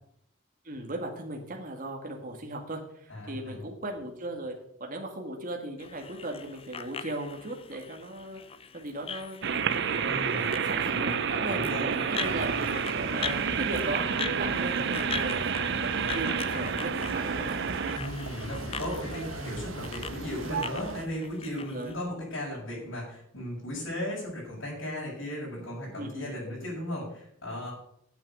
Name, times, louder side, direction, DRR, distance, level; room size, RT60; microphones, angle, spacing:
voice 1, 0.6-4.5 4.8-8.4 8.7-9.5 10.6-12.5 12.9-17.6 21.6-21.9 26.0-26.4, right 1 dB, 45° right, 1 dB, 1.9 m, -37 dB
voice 2, 3.1-3.6 10.0-11.2 11.4-12.0 12.4-12.6 18.0-27.7, left 1 dB, 75° left, -8 dB, 6.4 m, -36 dB
sound 1, 5.8-21.9, left 6 dB, 30° left, 0.7 m, -41 dB
sound 2, 9.4-18.0, right 6 dB, 60° right, 0.7 m, -29 dB
sound 3, 12.2-21.1, right 3 dB, 90° right, 1.2 m, -39 dB
9.1 x 8.1 x 8.0 m, 0.70 s
head